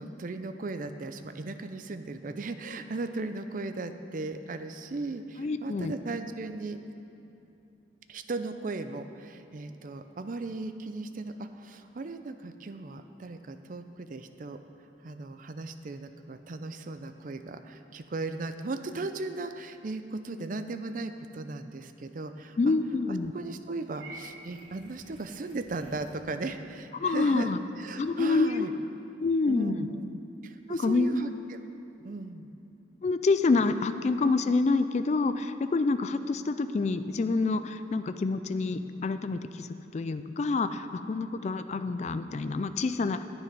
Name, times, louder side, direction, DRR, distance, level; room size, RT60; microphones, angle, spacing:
voice 1, 0.0-6.8 8.1-14.6 15.0-22.7 23.1-28.7 29.5-31.6 32.0-32.5 33.7-33.8, right 3 dB, 45° right, 9 dB, 0.5 m, -37 dB
voice 2, 5.4-5.9 22.6-23.3 26.9-27.6 28.0-28.7 29.2-29.9 30.7-31.2 33.0-43.2, left 3 dB, 40° left, 10 dB, 0.3 m, -27 dB
Purr / Meow, 23.9-26.2, right 2 dB, 80° right, 1.8 m, -49 dB
10.5 x 9.3 x 5.3 m, 2.9 s
head